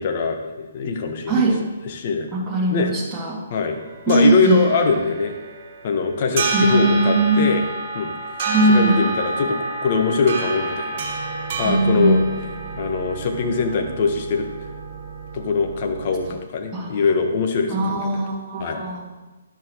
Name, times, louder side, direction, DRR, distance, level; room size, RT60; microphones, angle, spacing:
voice 1, 0.0-1.5 1.9-2.3 2.7-2.9 3.5-3.8 4.1-5.3 5.8-7.6 7.9-8.1 8.7-11.0 11.6-12.2 12.7-14.5 15.3-18.1 18.6-18.8, left 4 dB, 40° left, 4 dB, 1.5 m, -22 dB
voice 2, 1.3-1.6 2.3-3.4 4.1-4.6 6.5-7.5 8.5-9.0 11.6-12.2 16.7-17.0 17.7-19.0, right 2 dB, 10° right, -4 dB, 2.6 m, -20 dB
sound 1, 3.7-16.4, right 3 dB, 40° right, 1.9 m, -29 dB
12.0 x 10.5 x 3.2 m, 1.1 s
figure-of-eight pair, 130°, 0 cm